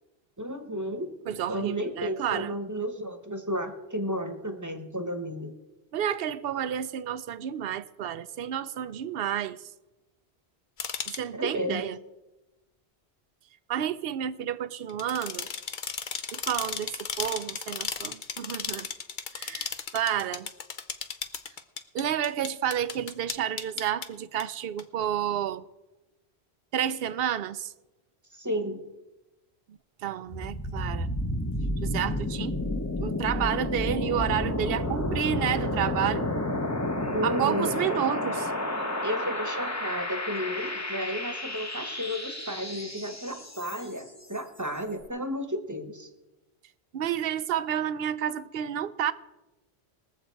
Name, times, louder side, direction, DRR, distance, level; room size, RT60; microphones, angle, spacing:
voice 1, 0.4-1.1 1.5-5.6 11.3-11.9 28.3-28.8 37.1-37.8 39.0-46.1, equal, 20° right, 1.1 m, -33 dB
voice 2, 1.3-2.5 5.9-9.7 11.1-12.0 13.7-15.5 16.3-18.9 19.3-20.5 21.9-25.7 26.7-27.7 29.7-31.1 31.8-32.6 33.0-36.3 37.2-38.5 46.9-49.1, right 10 dB, 70° right, 0.8 m, -30 dB
sound 1, 10.8-11.2 14.9-24.0 24.4-24.5 24.8-24.9, left 6 dB, 55° left, 0.9 m, -35 dB
sound 2, 30.3-44.1, left 1 dB, 15° left, 0.8 m, -31 dB
21.0 x 7.6 x 4.5 m
omnidirectional pair, 1.1 m